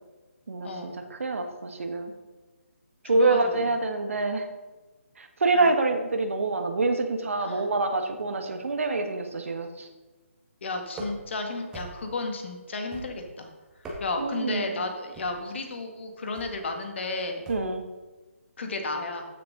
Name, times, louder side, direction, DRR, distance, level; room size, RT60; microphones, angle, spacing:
voice 1, 0.6-1.0 3.0-3.7 5.5-5.7 7.4-7.7 10.6-13.5 14.0-17.4 18.6-19.2, left 3 dB, 55° left, 4 dB, 1.9 m, -33 dB
voice 2, 1.2-2.1 3.0-4.5 5.2-9.9 14.2-14.8 17.5-17.8, right 3 dB, 65° right, 6 dB, 1.4 m, -26 dB
sound 1, 10.9-11.4 11.7-12.2 12.9-13.4 13.7-14.4 15.1-15.5 16.4-16.6 17.5-17.8, right 1 dB, 10° right, 1.7 m, -41 dB
14.5 x 6.8 x 3.9 m, 1.2 s
figure-of-eight pair, 150°, 8 cm